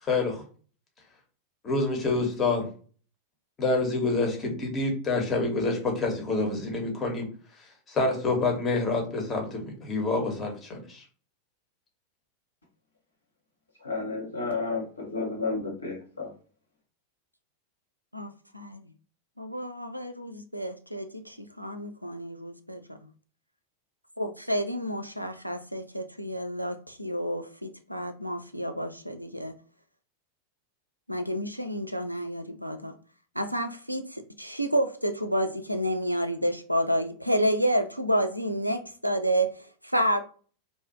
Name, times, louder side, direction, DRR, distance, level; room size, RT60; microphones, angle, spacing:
voice 1, 0.0-0.4 1.6-2.7 3.6-7.3 7.9-9.0 9.3-9.4 9.9-11.0, left 3 dB, 25° left, 1.0 m, -27 dB
voice 2, 13.8-16.3, left 3 dB, 80° left, 1.0 m, -31 dB
voice 3, 18.1-18.9 19.4-23.0 24.2-29.5 31.1-32.9 33.4-40.2, equal, 90° right, 0.3 m, -30 dB
2.6 x 2.3 x 2.7 m
figure-of-eight pair, 90°, 0 cm